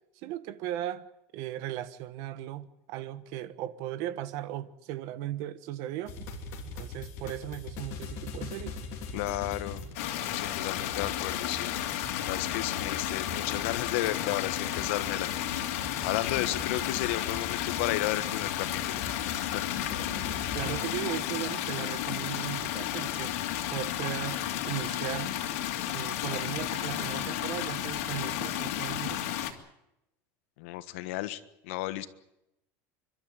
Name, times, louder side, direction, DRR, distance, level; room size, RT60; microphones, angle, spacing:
voice 1, 0.2-1.1 1.3-6.3 6.7-8.8 20.5-23.3 23.7-25.3 25.9-29.2, right 13 dB, 50° right, 1.3 m, -37 dB
sound 1, 6.1-22.0, left 4 dB, 40° left, 3.3 m, -42 dB
voice 2, 9.1-9.8 10.3-11.7 12.3-15.3 16.0-19.0 19.5-19.7 30.6-32.1, left 16 dB, 70° left, 1.5 m, -33 dB
sound 2, 9.9-29.5, left 12 dB, 90° left, 2.9 m, -33 dB
29.5 x 12.5 x 9.4 m
cardioid pair, 175°, 7 cm